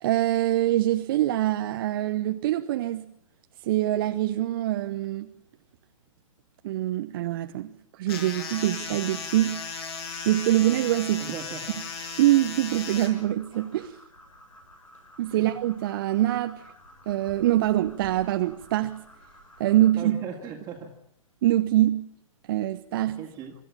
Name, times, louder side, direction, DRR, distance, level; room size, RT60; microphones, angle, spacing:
voice 1, 0.0-3.0 3.6-5.3 6.6-9.6 10.3-11.3 12.2-14.0 15.2-16.6 17.1-19.0 19.6-20.2 21.4-22.1 22.5-23.2, right 14 dB, 40° right, 1.0 m, -24 dB
sound 1, 8.1-13.1, left 5 dB, 45° left, 6.0 m, -36 dB
voice 2, 11.2-11.8 15.3-15.4 20.0-21.0 23.2-23.5, right 6 dB, 20° right, 2.3 m, -38 dB
sound 2, 13.1-19.9, equal, 75° left, 7.2 m, -51 dB
26.0 x 13.5 x 8.5 m
figure-of-eight pair, 120°, 18 cm